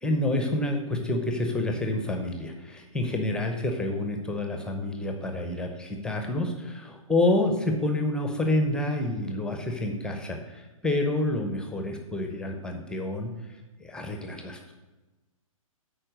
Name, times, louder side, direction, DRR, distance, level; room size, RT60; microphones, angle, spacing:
voice 1, 0.0-13.3 13.8-14.7, left 1 dB, 5° left, 4 dB, 0.7 m, -28 dB
9.9 x 4.4 x 6.5 m, 1.1 s
figure-of-eight pair, 120°, 18 cm